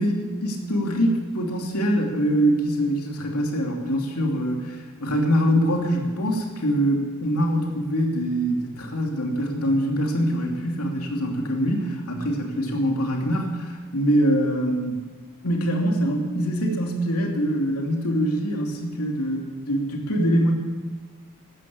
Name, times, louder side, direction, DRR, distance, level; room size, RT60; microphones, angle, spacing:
voice 1, 0.0-15.0 15.4-20.5, equal, 85° left, 0 dB, 2.8 m, -24 dB
13.5 x 12.5 x 8.6 m, 1.4 s
head